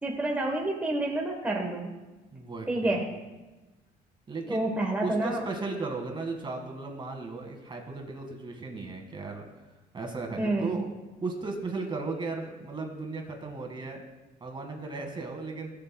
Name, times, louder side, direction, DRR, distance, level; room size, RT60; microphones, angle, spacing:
voice 1, 0.0-1.9 2.7-3.1 4.5-5.4 10.4-10.8, right 2 dB, 10° right, -1 dB, 1.1 m, -28 dB
voice 2, 2.3-3.0 4.3-4.7 5.0-9.4 9.9-10.9 11.2-14.0 14.4-15.7, right 3 dB, 30° right, 3 dB, 1.7 m, -36 dB
18.0 x 6.7 x 2.2 m, 1.1 s
cardioid pair, 110°, 17 cm